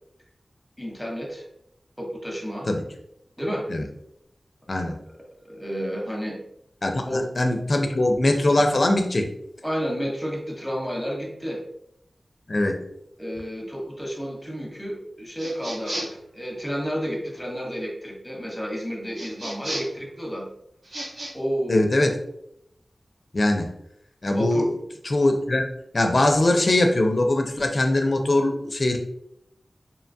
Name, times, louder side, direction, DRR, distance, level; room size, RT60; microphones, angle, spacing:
voice 1, 0.8-1.4 2.0-2.7 3.4-3.7 5.5-6.4 7.1-7.3 9.6-11.6 13.2-20.5 21.3-22.0 24.3-24.7, equal, 10° left, -1 dB, 0.8 m, -31 dB
voice 2, 6.8-9.3 12.5-12.8 21.7-22.2 23.3-23.7 24.2-24.7 25.0-25.6 25.9-29.0, left 1 dB, 55° left, 5 dB, 0.4 m, -21 dB
sound 1, 15.4-16.3 19.1-20.0 20.8-21.3, right 1 dB, 75° right, 0.6 m, -34 dB
2.8 x 2.2 x 2.6 m, 0.76 s
wide cardioid pair, 55°, 0 cm